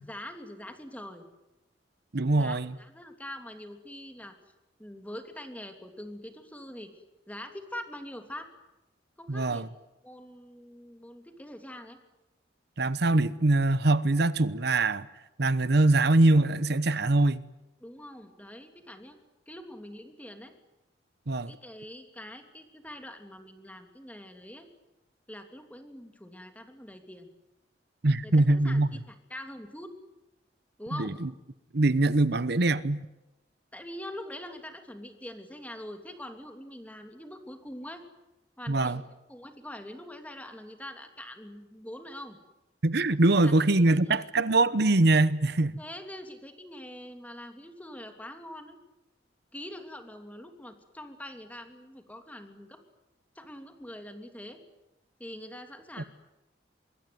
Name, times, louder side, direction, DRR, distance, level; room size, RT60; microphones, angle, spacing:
voice 1, 0.0-1.3 2.3-4.3 4.8-6.9 7.3-8.5 9.2-9.6 10.0-12.0 17.8-19.2 19.5-20.5 21.5-24.7 25.3-27.3 28.2-29.9 30.8-31.2 33.7-38.0 38.6-42.4 43.4-43.5 44.1-44.3 45.8-48.8 49.5-52.8 53.3-54.6 55.2-56.0, left 1 dB, 10° left, 2.9 m, -44 dB
voice 2, 2.1-2.7 9.3-9.7 12.8-15.1 15.4-17.4 21.3-21.5 28.0-28.9 30.9-31.3 31.7-33.0 38.7-39.0 42.8-45.8 56.0-56.1, right 2 dB, 60° right, 0.9 m, -23 dB
25.0 x 23.0 x 9.4 m
head